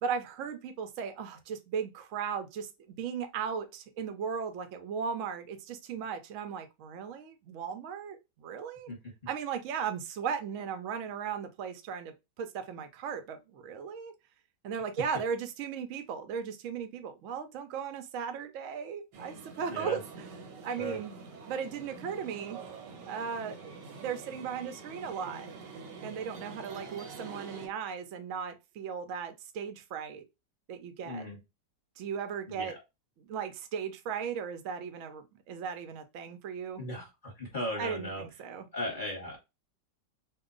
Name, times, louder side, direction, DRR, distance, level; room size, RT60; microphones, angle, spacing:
voice 1, 0.0-8.9 9.3-14.1 14.6-20.3 20.6-21.1 21.5-22.6 23.1-23.6 24.0-25.5 26.0-30.2 30.7-31.3 32.0-32.8 33.2-36.8 37.8-38.6, right 7 dB, 65° right, 0.8 m, -37 dB
sound 1, 19.1-27.7, right 4 dB, 90° right, 1.4 m, -46 dB
voice 2, 19.7-20.0 20.7-21.0 31.0-31.4 32.5-32.8 36.8-38.2 38.7-39.4, left 1 dB, 35° left, 1.0 m, -37 dB
2.8 x 2.2 x 3.7 m
omnidirectional pair, 1.9 m